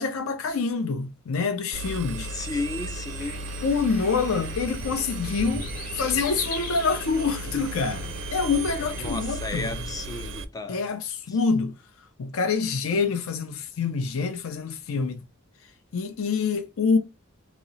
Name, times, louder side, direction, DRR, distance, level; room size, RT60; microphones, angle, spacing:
voice 1, 0.0-2.3 3.6-5.7 5.9-9.8 10.7-11.7 12.2-15.2 15.9-17.0, left 4 dB, 70° left, 0.5 m, -26 dB
Engine, 1.7-10.4, right 2 dB, 60° right, 0.4 m, -35 dB
voice 2, 2.3-3.5 9.0-10.9 11.3-11.4, left 3 dB, 15° left, 0.4 m, -34 dB
sound 1, 3.2-9.1, left 2 dB, 40° left, 0.9 m, -39 dB
2.8 x 2.0 x 3.8 m
head